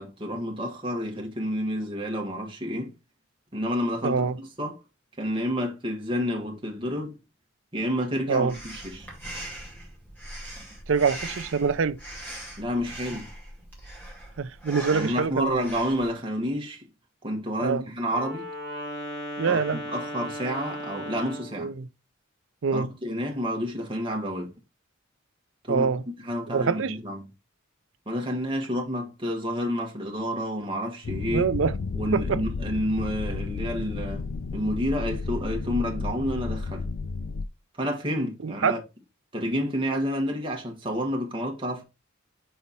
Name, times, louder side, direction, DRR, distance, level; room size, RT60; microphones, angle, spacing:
voice 1, 0.0-2.9 3.5-4.8 5.2-7.2 7.7-9.1 12.6-13.3 14.9-16.9 17.2-18.5 19.5-21.7 22.7-24.5 25.6-27.3 28.1-31.5 31.9-36.9 37.7-38.8 39.3-41.8, equal, 25° right, 1.5 m, -29 dB
voice 2, 4.0-4.4 8.3-8.5 10.9-12.0 14.4-15.6 17.6-17.8 19.4-19.8 21.6-21.9 22.6-22.9 25.7-26.0 26.5-27.0 31.3-31.7 32.1-32.4 38.4-38.8, right 5 dB, 65° right, 0.5 m, -25 dB
Breathing, 8.5-16.1, right 1 dB, 10° left, 2.1 m, -41 dB
Wind instrument woodwind instrument, 18.0-21.6, equal, 45° left, 2.6 m, -36 dB
sound 1, 31.0-37.5, left 4 dB, 75° left, 0.5 m, -32 dB
5.7 x 4.4 x 4.1 m
head